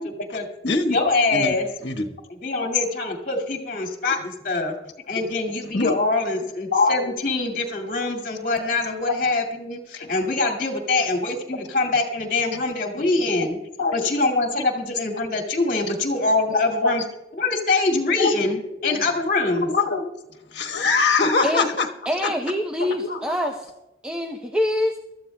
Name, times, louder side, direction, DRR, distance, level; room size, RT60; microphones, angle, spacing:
voice 1, 0.0-0.5 0.9-1.7 2.3-4.7 5.1-13.6 13.9-17.0 17.4-19.7, left 3 dB, 50° left, 3 dB, 2.3 m, -24 dB
voice 2, 0.6-1.0 1.3-1.5 1.8-2.1 2.6-2.7 5.1-5.2 5.7-5.9 6.7-7.1 10.0-10.1 11.0-11.1 12.9-13.0 13.8-14.0 16.5-17.0 18.2-18.4 18.8-19.0 19.6-20.1 20.5-21.9 22.2-22.3 22.9-23.5, left 4 dB, 75° left, 2 dB, 1.3 m, -23 dB
voice 3, 22.1-23.7 24.0-25.0, left 1 dB, 5° right, 1 dB, 0.7 m, -25 dB
23.5 x 14.0 x 2.3 m, 0.94 s
head